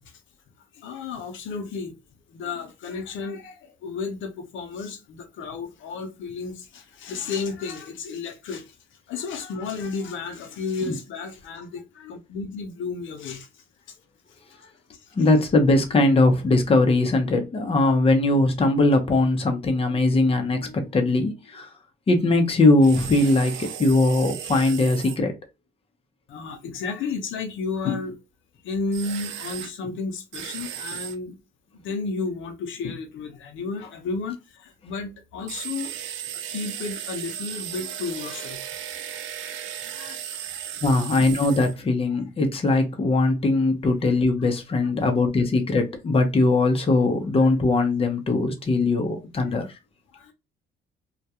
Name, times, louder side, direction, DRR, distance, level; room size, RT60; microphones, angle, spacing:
voice 1, 0.7-1.9 2.3-8.7 9.1-13.5 13.9-14.0 14.3-14.7 15.0-15.3 26.3-28.2 28.6-31.3 31.8-35.9 36.3-38.6 39.9-40.5 49.1-49.2 50.1-50.3, left 4 dB, 80° left, 0.6 m, -32 dB
voice 2, 15.2-21.7 22.1-25.3 40.8-49.8, left 2 dB, 30° left, 0.6 m, -20 dB
sound 1, 22.8-25.2 28.9-29.7 30.3-31.1 35.5-41.7, right 10 dB, 75° right, 0.4 m, -35 dB
2.2 x 2.2 x 2.7 m
cardioid pair, 90°, 20 cm